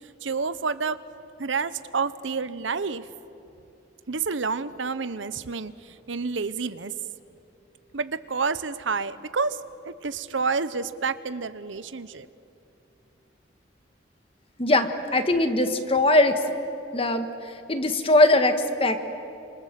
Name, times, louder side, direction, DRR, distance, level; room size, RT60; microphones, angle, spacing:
voice 1, 0.2-1.0 1.4-3.0 4.1-5.7 6.1-6.9 7.9-9.6 9.8-12.3, right 4 dB, 90° right, 14 dB, 0.9 m, -29 dB
voice 2, 14.6-16.4 16.9-19.0, left 2 dB, 30° left, 7 dB, 1.6 m, -21 dB
28.5 x 26.5 x 7.6 m, 2.8 s
head